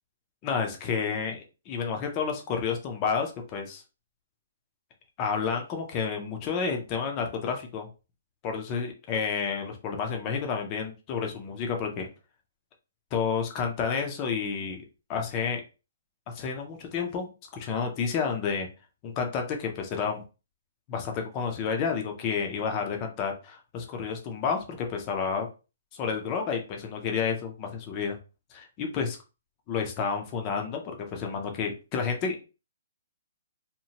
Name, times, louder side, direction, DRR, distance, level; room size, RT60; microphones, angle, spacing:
voice 1, 0.4-3.8 5.2-7.9 8.4-12.1 13.1-14.8 15.1-15.6 16.3-18.7 19.0-20.2 20.9-25.5 26.0-28.2 28.5-29.2 29.7-32.4, left 6 dB, 20° left, 3 dB, 0.4 m, -30 dB
2.8 x 2.1 x 2.7 m, 0.30 s
hypercardioid pair, 170°, 0 cm